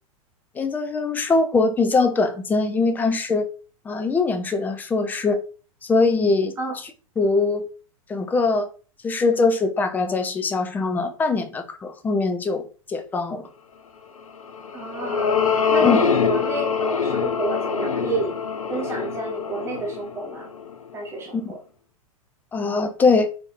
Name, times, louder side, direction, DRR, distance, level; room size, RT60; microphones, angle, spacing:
voice 1, 0.6-3.5 3.9-5.4 5.8-6.5 7.2-7.6 8.1-8.7 9.0-12.6 12.9-13.5 15.8-16.0 21.3-21.4 22.5-23.3, left 3 dB, 10° left, 0.3 m, -22 dB
sound 1, 14.4-20.9, left 6 dB, 75° left, 0.5 m, -24 dB
voice 2, 14.7-15.4 15.7-18.3 18.7-20.5 20.9-21.6, right 3 dB, 15° right, 0.9 m, -30 dB
4.4 x 2.6 x 2.5 m
figure-of-eight pair, 95°, 18 cm